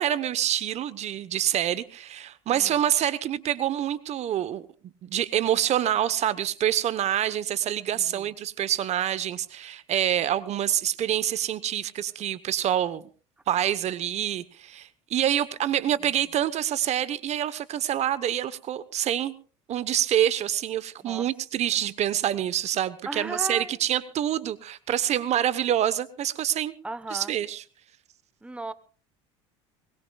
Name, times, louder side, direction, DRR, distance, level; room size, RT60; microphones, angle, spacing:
voice 1, 0.0-4.7 5.0-13.0 13.5-19.3 19.7-26.7 27.1-27.6, right 11 dB, 50° right, 1.1 m, -26 dB
voice 2, 7.9-8.3 21.0-21.3 23.1-23.7 26.8-27.3 28.4-28.7, right 2 dB, 10° right, 1.0 m, -36 dB
23.0 x 20.5 x 2.4 m
hypercardioid pair, 80°, 15 cm